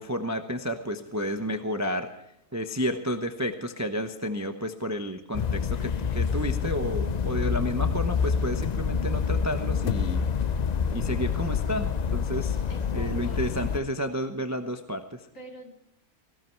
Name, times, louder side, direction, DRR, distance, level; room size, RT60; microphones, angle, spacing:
voice 1, 0.0-2.1 2.5-10.2 10.9-12.6 12.9-15.3, equal, 15° right, 6 dB, 0.8 m, -31 dB
sound 1, 5.3-13.8, left 6 dB, 80° left, 0.3 m, -27 dB
voice 2, 12.7-13.5 15.3-15.7, right 1 dB, 55° left, 1 dB, 3.3 m, -45 dB
18.5 x 16.5 x 4.6 m, 0.83 s
omnidirectional pair, 1.7 m